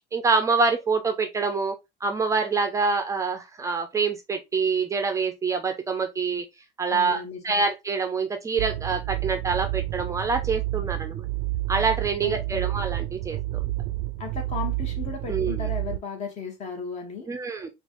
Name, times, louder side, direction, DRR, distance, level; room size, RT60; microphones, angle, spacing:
voice 1, 0.1-1.8 2.0-6.5 6.8-11.2 11.7-13.7 15.3-15.7 17.3-17.7, right 4 dB, 20° right, 0.5 m, -26 dB
voice 2, 6.9-7.6 12.2-12.8 14.2-17.3, left 5 dB, 40° left, 1.5 m, -35 dB
sound 1, 8.6-16.0, right 17 dB, 85° right, 0.5 m, -29 dB
5.1 x 2.4 x 3.1 m
cardioid pair, 140°, 17 cm